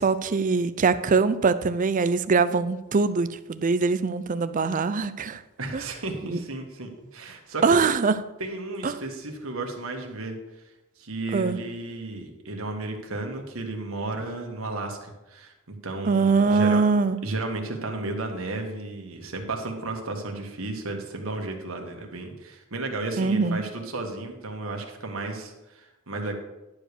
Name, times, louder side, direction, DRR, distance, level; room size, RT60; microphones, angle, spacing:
voice 1, 0.0-5.4 5.7-5.8 6.3-6.4 7.6-8.1 8.8-8.9 11.3-11.6 16.0-17.2 23.2-23.6, right 4 dB, 40° right, 13 dB, 0.4 m, -22 dB
voice 2, 5.6-7.8 8.4-10.4 11.0-16.8 17.2-26.3, right 2 dB, 70° right, 3 dB, 1.6 m, -33 dB
11.0 x 5.0 x 6.7 m, 1.0 s
head